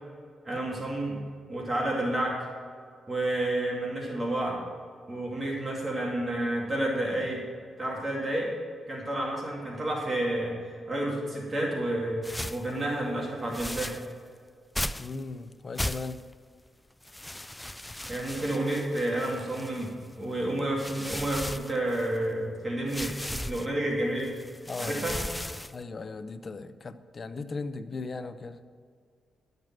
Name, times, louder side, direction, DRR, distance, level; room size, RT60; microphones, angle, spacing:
voice 1, 0.4-1.2 1.5-2.5 3.1-4.6 5.1-7.4 7.8-8.5 8.9-14.0 18.1-24.3 24.8-25.2, right 1 dB, 30° right, -2 dB, 2.4 m, -30 dB
sound 1, 12.2-12.7 13.5-14.1 14.7-15.2 15.8-16.3 17.0-20.0 20.6-22.2 22.9-23.7 24.2-25.8, left 1 dB, 10° left, 0.3 m, -36 dB
voice 2, 15.0-16.2 24.7-25.2 25.7-28.6, left 3 dB, 40° left, 11 dB, 0.7 m, -37 dB
12.5 x 6.7 x 6.1 m, 2.1 s
cardioid pair, 85°, 0 cm